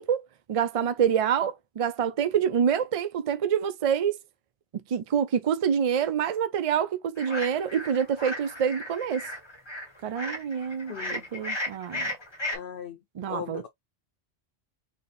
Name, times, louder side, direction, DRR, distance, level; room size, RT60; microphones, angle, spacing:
voice 1, 0.0-4.2 4.7-9.3 10.0-12.1 13.2-13.6, right 8 dB, 65° right, 0.3 m, -27 dB
sound 1, 7.2-12.6, left 1 dB, 25° left, 1.0 m, -35 dB
voice 2, 10.9-11.3 12.5-13.0 13.3-13.7, left 8 dB, 60° left, 0.8 m, -38 dB
4.3 x 2.8 x 3.2 m
omnidirectional pair, 1.1 m